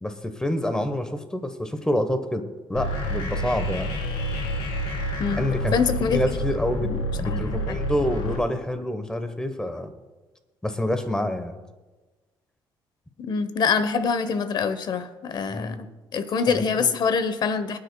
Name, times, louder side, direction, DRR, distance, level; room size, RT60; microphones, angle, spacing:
voice 1, 0.0-3.9 5.3-5.8 6.1-9.9 10.6-11.6 15.5-15.8 16.5-16.9, left 1 dB, 10° left, 9 dB, 1.0 m, -27 dB
sound 1, 2.7-8.4, equal, 85° left, 2.7 m, -28 dB
voice 2, 5.7-6.2 6.8-7.0 7.2-7.8 13.2-15.9 16.1-17.8, left 5 dB, 50° left, 12 dB, 0.9 m, -25 dB
22.5 x 9.6 x 2.3 m, 1.2 s
cardioid pair, 115°, 9 cm